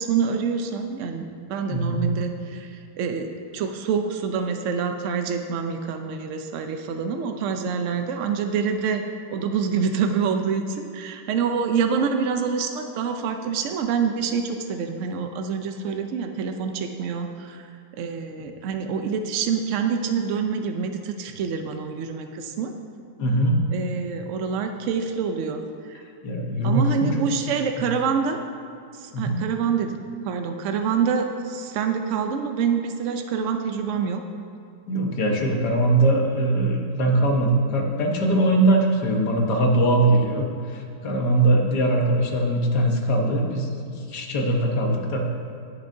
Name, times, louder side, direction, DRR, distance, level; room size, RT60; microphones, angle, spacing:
voice 1, 0.0-9.0 9.3-17.7 18.0-22.7 23.7-26.0 26.6-28.4 28.9-30.0 30.2-34.2, right 6 dB, 75° right, 5 dB, 0.7 m, -26 dB
voice 2, 1.7-2.1 23.2-23.6 26.2-27.1 29.1-29.4 34.9-45.3, right 1 dB, 65° left, 1 dB, 1.7 m, -21 dB
18.0 x 7.3 x 2.7 m, 2.5 s
omnidirectional pair, 1.9 m